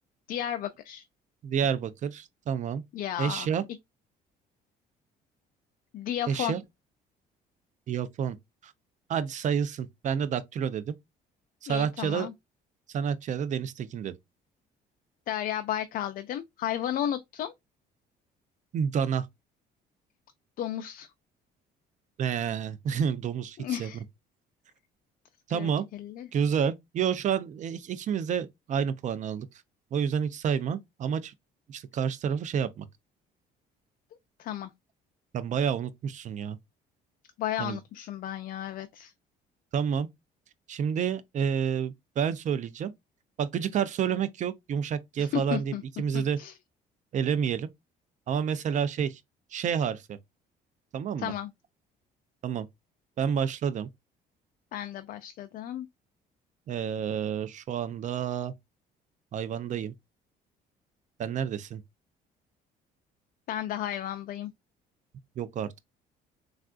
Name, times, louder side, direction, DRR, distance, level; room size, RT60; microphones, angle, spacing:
voice 1, 0.3-1.0 2.9-3.5 5.9-6.5 11.7-12.3 15.3-17.5 20.6-21.1 23.6-24.0 25.5-26.3 34.4-34.7 37.4-39.1 45.2-45.8 46.1-46.5 51.2-51.5 54.7-55.9 63.5-64.5, left 11 dB, 55° left, 0.4 m, -33 dB
voice 2, 1.4-2.8 3.2-3.6 6.3-6.6 7.9-8.4 8.6-8.7 9.1-10.9 11.6-12.3 12.9-14.2 18.7-19.3 22.2-24.0 25.5-25.8 26.3-29.5 29.9-31.3 31.7-32.9 35.3-36.6 37.6-37.8 39.7-40.1 40.7-42.9 43.4-46.4 47.1-47.7 48.3-49.2 49.5-50.2 50.9-51.3 52.4-52.7 53.2-53.9 56.7-58.5 59.3-59.9 61.2-61.8 65.4-65.8, right 7 dB, 45° right, 0.5 m, -29 dB
3.5 x 2.4 x 2.4 m
cardioid pair, 110°, 17 cm